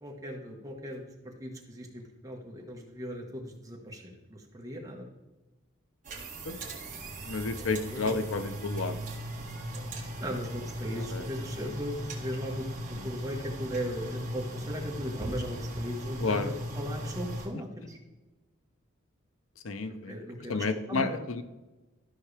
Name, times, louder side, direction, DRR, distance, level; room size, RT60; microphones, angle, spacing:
voice 1, 0.0-5.1 7.4-8.3 10.2-18.0 19.8-21.2, equal, 15° right, -1 dB, 1.4 m, -38 dB
sound 1, 6.0-17.5, equal, 40° right, 1.7 m, -38 dB
voice 2, 7.3-9.0 11.1-11.3 16.2-16.5 19.6-20.1 20.5-21.4, left 3 dB, 85° left, 11 dB, 0.7 m, -31 dB
13.5 x 5.6 x 3.4 m, 1.1 s
head